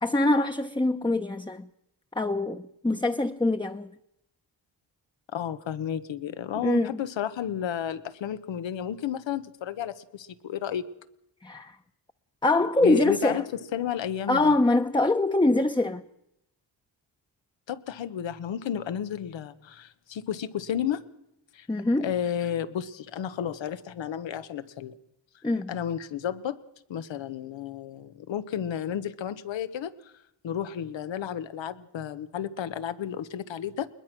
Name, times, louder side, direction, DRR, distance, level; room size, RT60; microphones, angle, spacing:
voice 1, 0.0-1.7 2.1-3.9 6.6-6.9 11.4-11.8 12.4-13.4 14.3-16.0 21.7-22.1 25.4-25.8, left 2 dB, 10° left, 0.9 m, -24 dB
voice 2, 5.3-10.8 12.8-14.5 17.7-21.0 21.5-21.7 22.0-25.0 25.7-26.6 26.9-30.1 30.4-33.9, left 9 dB, 90° left, 1.3 m, -32 dB
21.5 x 20.0 x 6.1 m
cardioid pair, 75°, 44 cm